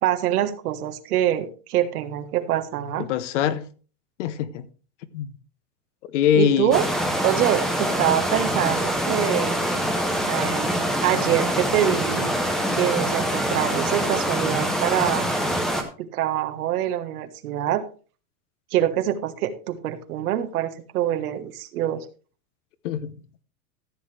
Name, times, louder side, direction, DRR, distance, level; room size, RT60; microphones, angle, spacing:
voice 1, 0.0-3.1 6.3-6.8 7.2-9.6 10.3-12.4 12.7-15.3 16.0-17.8 18.7-22.1, right 11 dB, 75° right, 1.6 m, -25 dB
voice 2, 3.0-3.6 4.2-4.6 5.1-5.3 6.1-6.8 22.8-23.1, left 9 dB, 50° left, 1.0 m, -23 dB
sound 1, 6.7-15.8, equal, ahead, 0.6 m, -24 dB
14.0 x 8.0 x 3.3 m
supercardioid pair, 175°, 45 cm